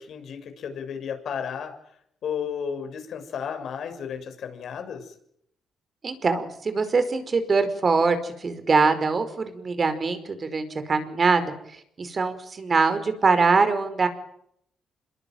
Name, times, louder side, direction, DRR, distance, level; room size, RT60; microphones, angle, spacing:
voice 1, 0.0-1.7 2.2-5.1, left 7 dB, 65° left, 7 dB, 6.9 m, -33 dB
voice 2, 6.0-11.4 12.0-14.1, right 4 dB, 35° right, 10 dB, 5.0 m, -23 dB
27.5 x 22.0 x 9.4 m, 0.72 s
cardioid pair, 90°, 0 cm